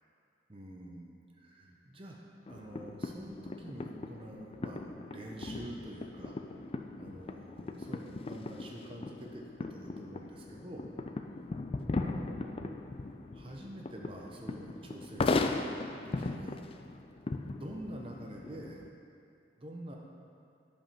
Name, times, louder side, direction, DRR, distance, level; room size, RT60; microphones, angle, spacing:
voice 1, 0.5-2.2 2.5-6.4 7.0-10.9 12.0-12.8 13.3-15.6 16.0-16.6 17.5-18.8 19.6-20.0, right 1 dB, 30° right, -1 dB, 0.8 m, -47 dB
sound 1, 2.5-18.9, left 3 dB, 30° left, 0.3 m, -38 dB
10.5 x 5.3 x 5.7 m, 2.5 s
head